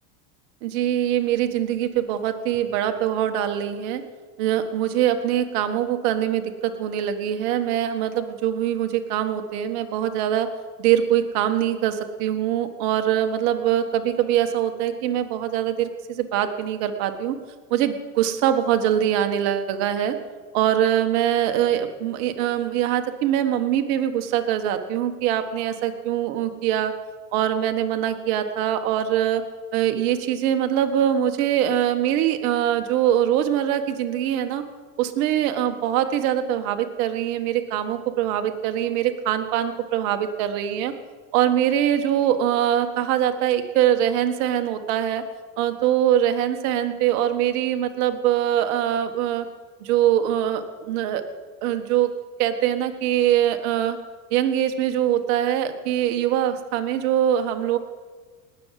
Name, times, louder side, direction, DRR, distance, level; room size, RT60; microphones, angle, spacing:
voice 1, 0.6-4.0 4.4-10.5 10.8-17.4 17.7-20.2 20.5-26.9 27.3-29.4 29.7-34.6 35.0-40.9 41.3-45.2 45.6-49.5 49.8-51.2 51.6-52.1 52.4-54.0 54.3-57.8, right 11 dB, 65° right, 7 dB, 1.7 m, -23 dB
19.0 x 7.2 x 7.6 m, 1.4 s
hypercardioid pair, 95°, 46 cm